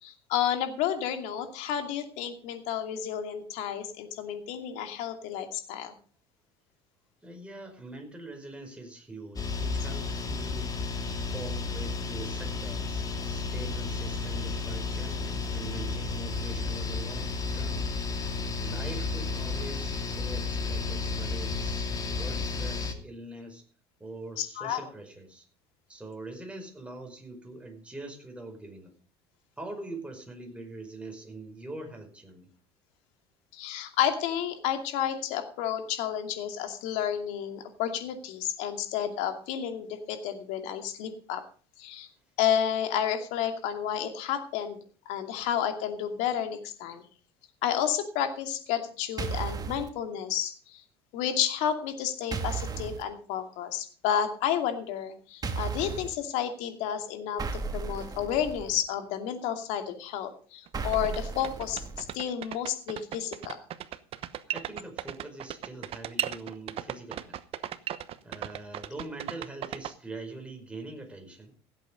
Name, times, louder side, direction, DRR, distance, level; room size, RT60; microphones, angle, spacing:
voice 1, 0.0-5.9 24.4-24.8 33.5-41.4 41.8-42.1 42.4-44.8 45.1-47.0 47.6-50.8 51.1-57.4 57.7-63.6, left 9 dB, 65° left, 6 dB, 2.6 m, -31 dB
voice 2, 7.2-10.8 11.3-17.8 18.6-23.6 24.0-25.4 25.9-28.9 29.6-32.5 45.4-45.5 64.5-67.4 68.2-71.5, right 2 dB, 10° right, 2 dB, 5.3 m, -43 dB
sound 1, 9.4-22.9, left 4 dB, 30° left, 2.5 m, -32 dB
sound 2, 49.2-49.9 52.3-53.0 55.4-56.1 57.4-58.8 60.7-62.2, right 4 dB, 30° right, 2.2 m, -34 dB
sound 3, 60.7-60.8 60.9-69.9, right 11 dB, 50° right, 1.0 m, -36 dB
16.5 x 8.3 x 5.2 m, 0.41 s
hypercardioid pair, 80°, 13 cm